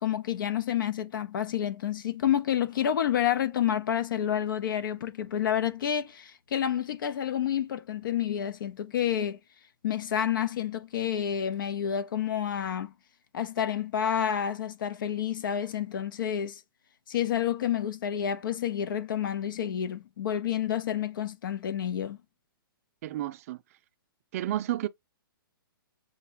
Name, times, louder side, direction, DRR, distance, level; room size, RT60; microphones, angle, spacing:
voice 1, 0.0-9.4 9.8-12.9 13.3-16.6 17.1-22.2, left 9 dB, 65° left, 0.8 m, -29 dB
voice 2, 23.0-23.6 24.3-24.9, right 13 dB, 40° right, 0.4 m, -31 dB
6.6 x 2.3 x 2.9 m
hypercardioid pair, 145°, 12 cm